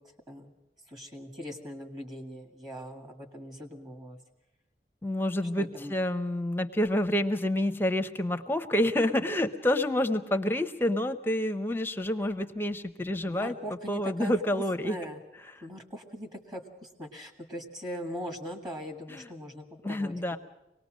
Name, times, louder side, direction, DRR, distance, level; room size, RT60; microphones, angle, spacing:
voice 1, 0.9-4.2 5.6-5.9 13.3-15.2 15.6-20.4, equal, 25° right, 4 dB, 1.8 m, -41 dB
voice 2, 5.0-13.5 13.9-15.0 15.5-15.6 19.1-19.3 19.8-20.4, left 1 dB, 15° left, 8 dB, 0.7 m, -28 dB
25.0 x 19.0 x 6.3 m, 0.93 s
head